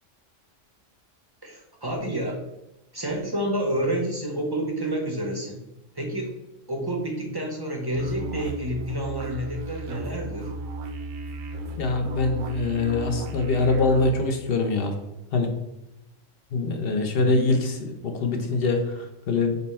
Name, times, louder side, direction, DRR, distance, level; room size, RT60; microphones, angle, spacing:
voice 1, 1.4-2.4 2.9-5.6 5.9-6.3 6.7-10.5, right 1 dB, 30° right, 0 dB, 0.5 m, -29 dB
sound 1, 7.9-14.1, right 3 dB, 75° right, 0.9 m, -35 dB
voice 2, 11.8-14.9 15.3-15.5 16.5-19.6, left 3 dB, 55° left, 4 dB, 0.8 m, -24 dB
5.3 x 2.2 x 4.2 m, 0.90 s
omnidirectional pair, 1.3 m